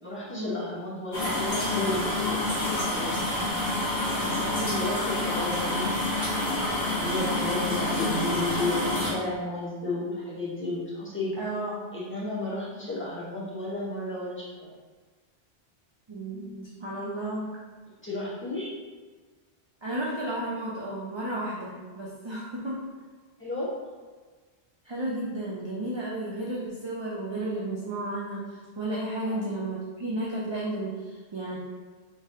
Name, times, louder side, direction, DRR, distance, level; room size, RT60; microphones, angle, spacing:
voice 1, 0.0-3.1 4.4-6.2 6.9-11.3 11.9-14.7 18.0-18.7 23.4-23.8 29.2-29.5, left 2 dB, 10° left, -9 dB, 1.0 m, -33 dB
sound 1, 1.1-9.1, left 1 dB, 75° left, 1.6 m, -28 dB
voice 2, 4.1-4.7 11.4-11.8 16.1-17.5 19.8-22.8 24.9-28.4 28.8-31.0 31.3-31.6, right 1 dB, 40° right, -5 dB, 0.4 m, -33 dB
3.7 x 3.3 x 2.7 m, 1.4 s
omnidirectional pair, 1.1 m